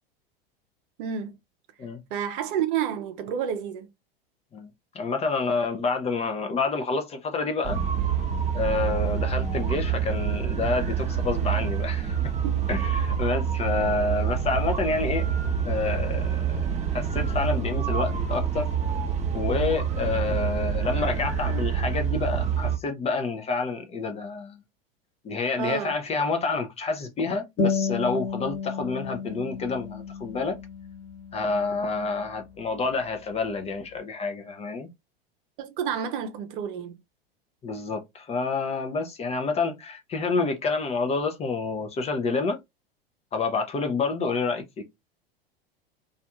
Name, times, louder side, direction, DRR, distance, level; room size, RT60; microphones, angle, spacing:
voice 1, 1.0-1.3 2.1-3.8 12.4-12.6 25.6-25.9 35.6-36.9, right 8 dB, 60° right, 0.7 m, -29 dB
voice 2, 4.9-7.8 8.5-12.2 12.7-15.3 15.6-18.7 19.3-24.6 25.2-30.6 31.3-34.9 37.6-42.6 43.3-44.9, left 4 dB, 20° left, 0.5 m, -28 dB
sound 1, 7.6-22.8, right 7 dB, 25° right, 0.7 m, -27 dB
sound 2, 27.6-32.6, left 5 dB, 45° left, 1.3 m, -32 dB
2.6 x 2.4 x 2.2 m
hypercardioid pair, 90°, 30 cm